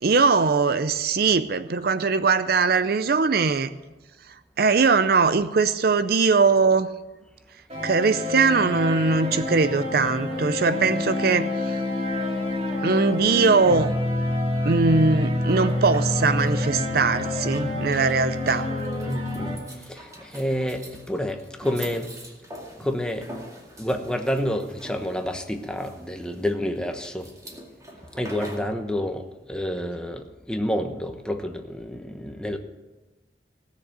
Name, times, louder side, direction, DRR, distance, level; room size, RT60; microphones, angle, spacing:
voice 1, 0.0-3.7 4.6-6.9 7.8-11.8 12.8-13.9 14.6-18.7, right 4 dB, 55° right, 13 dB, 0.5 m, -21 dB
sound 1, 7.7-19.5, left 1 dB, 35° right, 2.4 m, -27 dB
sound 2, 15.5-28.7, right 1 dB, 20° right, 2.2 m, -44 dB
voice 2, 19.0-19.5 19.9-22.1 22.8-23.3 23.8-27.3 28.1-32.6, equal, 5° left, 5 dB, 1.0 m, -29 dB
17.5 x 6.7 x 8.8 m, 1.1 s
head